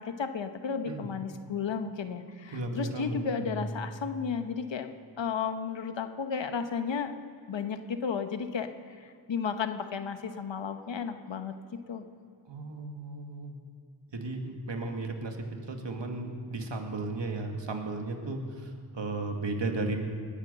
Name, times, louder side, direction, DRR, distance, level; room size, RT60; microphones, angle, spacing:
voice 1, 0.0-7.1 7.5-11.5 11.9-12.1, left 6 dB, 85° left, 8 dB, 1.1 m, -33 dB
voice 2, 2.5-3.6 12.5-13.6 14.1-20.0, right 2 dB, 75° right, 3 dB, 2.2 m, -35 dB
19.5 x 9.6 x 6.8 m, 2.5 s
cardioid pair, 45°, 44 cm